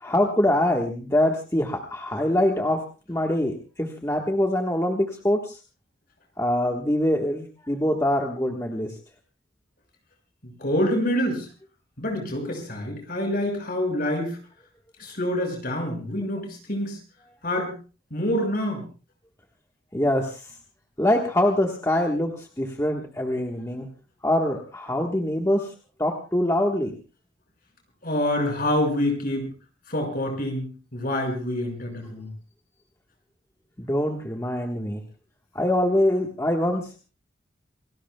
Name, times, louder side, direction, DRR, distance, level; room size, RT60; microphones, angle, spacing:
voice 1, 0.0-2.8 3.1-5.6 6.4-9.0 19.9-20.5 21.0-23.9 24.2-25.7 26.0-26.9 33.8-35.0 35.5-37.0, left 1 dB, 15° left, 1 dB, 1.4 m, -24 dB
voice 2, 10.4-11.5 12.0-14.4 15.0-17.0 17.4-17.7 18.1-18.8 28.0-29.5 29.9-32.3, left 1 dB, 45° left, 3 dB, 5.9 m, -26 dB
27.5 x 19.0 x 2.3 m, 0.35 s
head